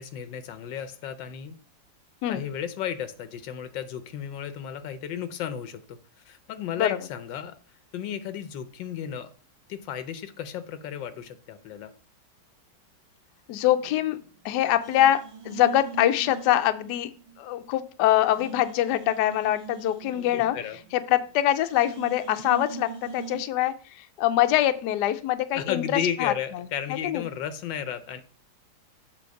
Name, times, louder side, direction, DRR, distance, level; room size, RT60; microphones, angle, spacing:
voice 1, 0.0-1.5 2.3-6.0 6.2-7.5 7.9-9.3 9.7-11.9 20.3-20.8 25.5-28.2, left 9 dB, 90° left, 11 dB, 1.5 m, -33 dB
voice 2, 13.5-14.2 14.4-17.1 17.4-20.6 20.9-25.8 26.2-26.7 27.0-27.2, left 13 dB, 75° left, 9 dB, 1.1 m, -24 dB
sound 1, 13.8-14.5 14.8-17.4 17.7-17.8 18.2-21.3 21.7-23.4, right 6 dB, 40° right, 0.7 m, -42 dB
7.6 x 3.5 x 6.4 m, 0.39 s
omnidirectional pair, 1.9 m